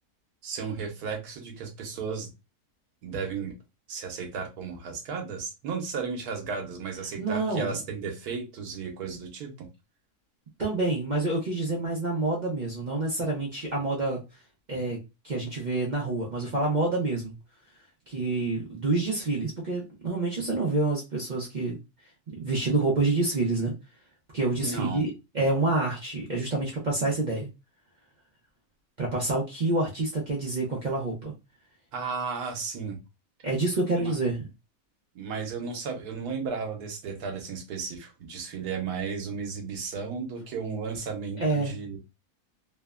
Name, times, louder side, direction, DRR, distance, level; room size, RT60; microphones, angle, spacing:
voice 1, 0.4-2.3 3.0-3.6 3.9-9.5 24.6-25.1 31.9-33.0 34.0-34.1 35.1-42.0, right 5 dB, 90° right, 2 dB, 1.3 m, -34 dB
voice 2, 7.2-7.8 10.6-14.2 14.7-15.0 15.2-17.3 18.1-21.8 22.3-23.7 24.3-25.1 25.3-27.5 29.0-31.3 33.4-34.5 41.4-41.7, right 2 dB, 50° right, -3 dB, 0.5 m, -27 dB
3.2 x 2.1 x 2.3 m, 0.26 s
omnidirectional pair, 1.6 m